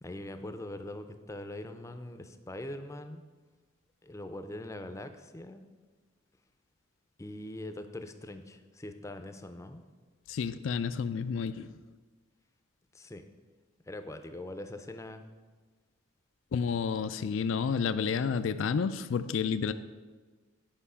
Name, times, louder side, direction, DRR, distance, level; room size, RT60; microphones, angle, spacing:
voice 1, 0.0-3.2 4.0-5.6 7.2-9.8 12.9-13.3 13.9-15.2, left 1 dB, 15° left, 8 dB, 0.5 m, -42 dB
voice 2, 10.3-11.7 16.5-19.7, left 6 dB, 75° left, 12 dB, 0.4 m, -30 dB
10.5 x 5.4 x 5.6 m, 1.4 s
head